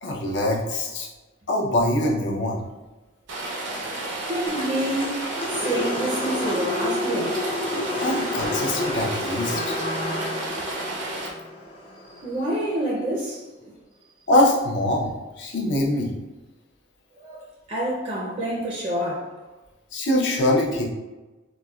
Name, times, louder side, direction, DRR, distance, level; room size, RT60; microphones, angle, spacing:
voice 1, 0.0-1.1 1.5-2.6 8.0-9.8 14.3-15.1 15.4-16.1 19.9-20.9, left 1 dB, 70° left, -1 dB, 0.6 m, -23 dB
Rain, 3.3-11.3, right 2 dB, 75° right, 0.6 m, -32 dB
voice 2, 4.3-5.2 5.6-7.5 12.2-13.7 17.2-19.3, right 1 dB, 35° right, -4 dB, 0.4 m, -28 dB
sound 1, 4.5-12.7, left 2 dB, 25° left, 0.4 m, -30 dB
4.0 x 2.0 x 2.3 m, 1.1 s
head